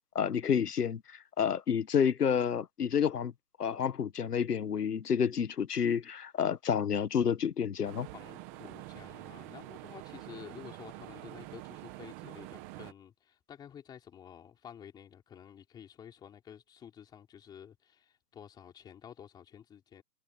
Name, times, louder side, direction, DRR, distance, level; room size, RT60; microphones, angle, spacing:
voice 1, 0.1-1.0 1.4-3.3 3.6-8.1, left 7 dB, 70° left, 1.4 m, -29 dB
sound 1, 7.8-12.9, right 17 dB, 10° right, 1.0 m, -46 dB
voice 2, 8.1-20.0, left 9 dB, 10° left, 3.6 m, -51 dB
hypercardioid pair, 160°, 49 cm